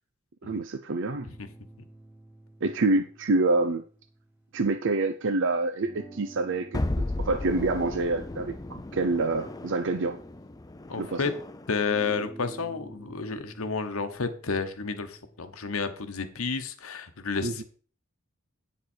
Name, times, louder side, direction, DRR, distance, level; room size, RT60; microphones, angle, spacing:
voice 1, 0.4-1.3 2.6-3.8 4.5-6.8 7.2-10.2 11.0-11.2 17.4-17.6, right 3 dB, 60° right, 9 dB, 0.6 m, -27 dB
sound 1, 1.1-5.0 5.8-10.9 11.9-16.1, right 2 dB, 10° right, 1.9 m, -50 dB
sound 2, 6.7-11.8, left 2 dB, 15° left, 0.6 m, -35 dB
voice 2, 10.9-11.4 11.7-17.6, left 4 dB, 70° left, 8 dB, 1.1 m, -31 dB
9.4 x 7.2 x 4.4 m, 0.41 s
head